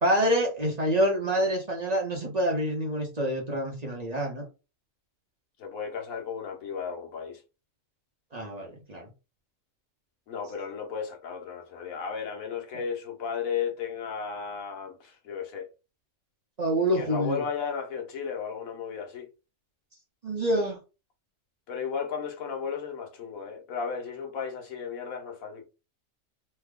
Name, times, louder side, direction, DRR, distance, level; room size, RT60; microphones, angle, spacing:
voice 1, 0.0-4.5 8.3-9.1 16.6-17.5 20.2-20.8, equal, 35° right, 0.8 m, -27 dB
voice 2, 5.6-7.4 10.3-15.7 16.9-19.3 21.7-25.6, left 6 dB, 85° left, 1.3 m, -34 dB
3.3 x 2.1 x 3.5 m
omnidirectional pair, 1.4 m